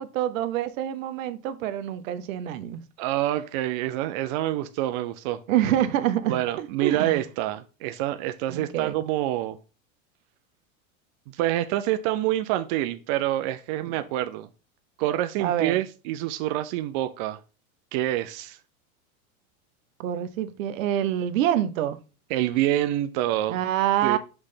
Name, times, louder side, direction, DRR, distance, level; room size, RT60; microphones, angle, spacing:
voice 1, 0.0-2.8 5.5-7.2 8.5-9.0 13.9-14.0 15.4-15.8 20.0-22.0 23.5-24.2, right 11 dB, 65° right, 0.9 m, -26 dB
voice 2, 3.0-5.4 6.3-9.6 11.3-14.5 15.0-17.4 17.9-18.6 22.3-23.6 24.0-24.2, right 14 dB, 35° right, 0.4 m, -27 dB
6.1 x 3.2 x 5.6 m
supercardioid pair, 130°, 43 cm